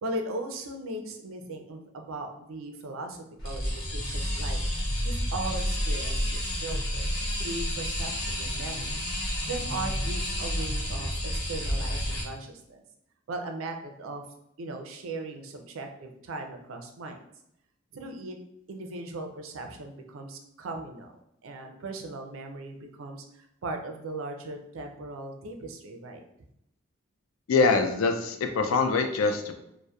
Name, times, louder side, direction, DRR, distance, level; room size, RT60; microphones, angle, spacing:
voice 1, 0.0-4.6 5.0-7.1 7.4-11.1 11.4-12.8 13.3-14.2 14.6-17.2 17.9-18.4 18.7-21.1 21.4-26.2, right 2 dB, 85° right, 4 dB, 0.4 m, -38 dB
sound 1, 3.4-12.2, equal, 60° left, 0.9 m, -30 dB
voice 2, 27.5-29.6, left 4 dB, 85° left, 6 dB, 0.4 m, -24 dB
2.7 x 2.0 x 2.2 m, 0.79 s
head